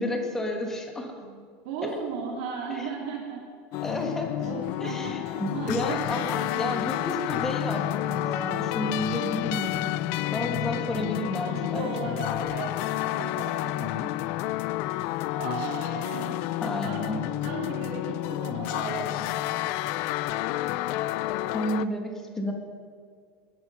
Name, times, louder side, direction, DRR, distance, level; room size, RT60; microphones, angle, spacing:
voice 1, 0.0-1.1 1.8-2.0 2.7-2.9 3.8-4.3 4.8-9.9 10.3-12.1 16.6-17.2 21.5-22.5, left 1 dB, 10° left, 2 dB, 1.5 m, -31 dB
voice 2, 1.6-3.4 3.7-3.8 4.4-6.7 10.1-11.1 11.4-14.1 14.9-15.1 15.3-16.5 16.8-19.3, right 4 dB, 60° right, -2 dB, 3.1 m, -36 dB
sound 1, 3.7-21.9, left 15 dB, 45° left, 0.3 m, -30 dB
18.5 x 10.5 x 5.6 m, 2.1 s
supercardioid pair, 180°, 5 cm